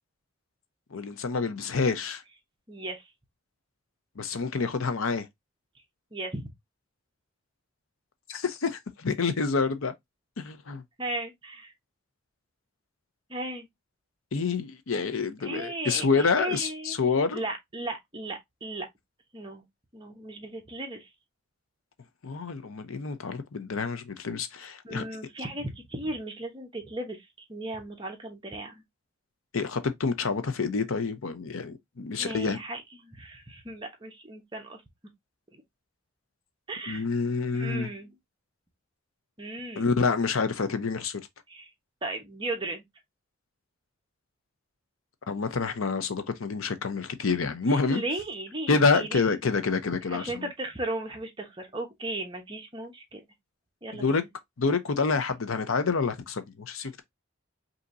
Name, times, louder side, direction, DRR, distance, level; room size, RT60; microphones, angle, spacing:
voice 1, 0.9-2.2 4.2-5.3 8.3-9.9 10.4-10.8 14.3-17.4 22.2-25.0 29.5-32.6 36.9-37.9 39.8-41.2 45.3-48.0 48.7-50.4 54.0-54.2 54.6-57.0, left 4 dB, 85° left, 0.7 m, -27 dB
voice 2, 2.7-3.0 6.1-6.4 11.0-11.7 13.3-13.7 15.4-17.0 17.3-18.9 19.3-19.6 19.9-21.1 24.8-28.8 32.2-34.8 36.7-37.0 37.5-38.1 39.4-39.9 41.5-41.7 42.0-42.8 47.7-49.3 50.1-53.2 53.8-54.3, right 2 dB, 25° right, 1.1 m, -36 dB
5.3 x 2.9 x 2.6 m
head